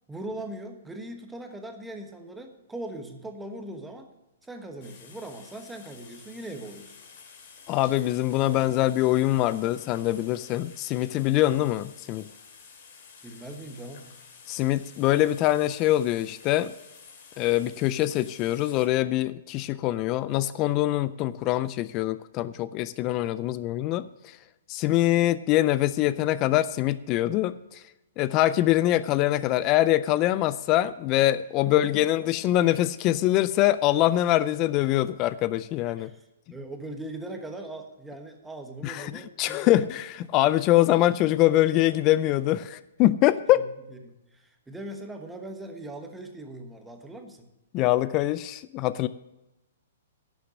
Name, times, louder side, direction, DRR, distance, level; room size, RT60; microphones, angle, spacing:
voice 1, 0.1-4.1 4.4-6.9 13.2-14.1 31.6-32.1 36.0-39.8 43.5-47.5, right 1 dB, 5° right, 4 dB, 1.2 m, -40 dB
sound 1, 4.8-18.9, left 6 dB, 50° left, 2.5 m, -51 dB
voice 2, 7.7-12.3 14.5-16.7 17.4-24.1 24.7-27.8 28.2-36.1 38.8-43.6 47.7-49.1, left 15 dB, 30° left, 17 dB, 0.3 m, -24 dB
11.0 x 6.8 x 6.4 m, 0.98 s
hypercardioid pair, 150°, 0 cm